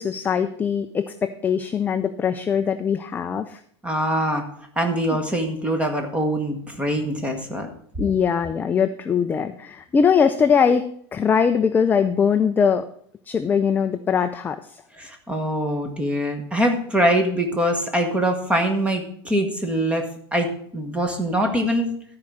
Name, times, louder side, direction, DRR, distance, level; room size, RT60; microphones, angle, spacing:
voice 1, 0.0-3.6 8.0-12.9 13.3-14.6, left 6 dB, 15° left, 9 dB, 0.4 m, -21 dB
voice 2, 3.8-4.4 4.8-7.7 14.9-20.1 20.3-21.9, right 1 dB, 10° right, 4 dB, 1.4 m, -23 dB
12.5 x 4.8 x 6.3 m, 0.63 s
supercardioid pair, 145°, 14 cm